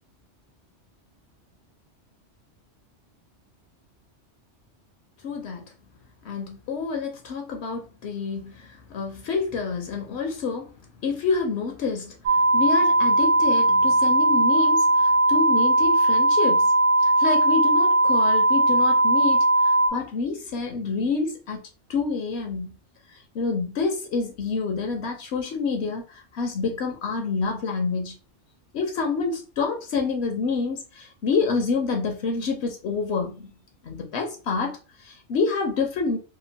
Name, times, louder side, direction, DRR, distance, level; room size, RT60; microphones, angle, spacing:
voice 1, 5.2-5.7 6.2-10.7 11.0-16.7 17.0-21.6 21.9-22.8 23.1-28.2 28.7-33.5 33.8-36.2, left 4 dB, 70° left, 0.8 m, -28 dB
sound 1, 12.3-19.9, right 2 dB, 85° right, 0.9 m, -19 dB
2.9 x 2.2 x 2.6 m
omnidirectional pair, 1.2 m